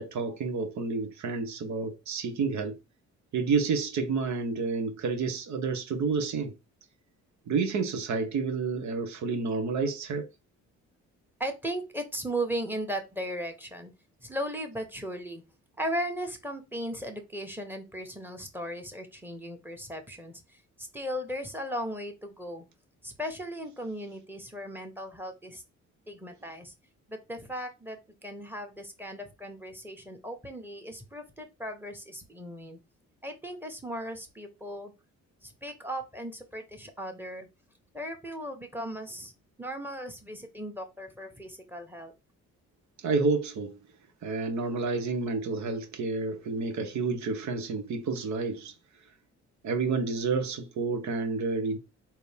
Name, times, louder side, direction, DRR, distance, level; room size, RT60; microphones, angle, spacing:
voice 1, 0.0-2.8 3.3-6.5 7.5-10.3 43.0-43.8 44.2-48.7 49.6-51.8, right 4 dB, 70° right, 1.1 m, -29 dB
voice 2, 11.4-13.9 14.2-15.4 15.8-22.7 23.0-25.6 26.1-26.7 27.1-32.8 33.2-34.9 35.4-37.5 37.9-39.3 39.6-42.1, equal, 5° right, 1.3 m, -37 dB
3.9 x 2.9 x 3.5 m
cardioid pair, 90°, 30 cm